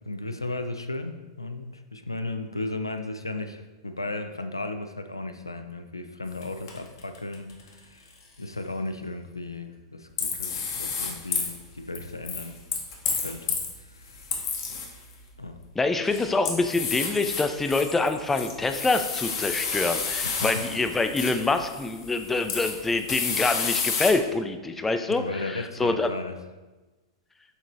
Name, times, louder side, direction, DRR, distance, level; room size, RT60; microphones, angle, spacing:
voice 1, 0.1-12.6 13.2-14.2 15.4-15.6 20.2-20.8 25.1-26.3, left 2 dB, 90° left, 7 dB, 0.3 m, -35 dB
sound 1, 6.4-6.5 6.7-7.7 10.2-11.5 11.9-13.7 14.1-15.1 15.9-24.1, left 5 dB, 60° left, 0.8 m, -31 dB
voice 2, 15.8-26.1, left 3 dB, 10° left, 7 dB, 0.3 m, -26 dB
6.7 x 3.0 x 2.6 m, 1.2 s
figure-of-eight pair, 95°, 2 cm